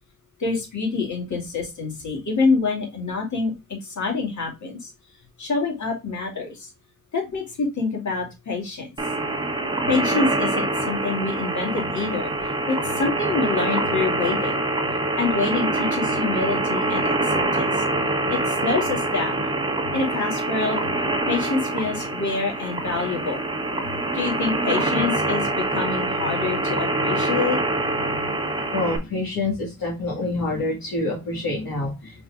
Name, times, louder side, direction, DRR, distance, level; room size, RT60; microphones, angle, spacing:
voice 1, 0.4-4.9 5.4-6.7 7.1-8.9 9.9-12.3 12.7-14.6 15.2-17.8 18.3-19.4 19.9-20.9 21.3-23.4 24.1-27.6, left 4 dB, 50° left, 0 dB, 2.5 m, -26 dB
sound 1, 9.0-29.0, right 2 dB, 15° right, 1.1 m, -25 dB
voice 2, 28.7-32.2, left 2 dB, 70° left, -2 dB, 2.0 m, -27 dB
5.1 x 4.3 x 2.4 m, 0.24 s
cardioid pair, 80°, 36 cm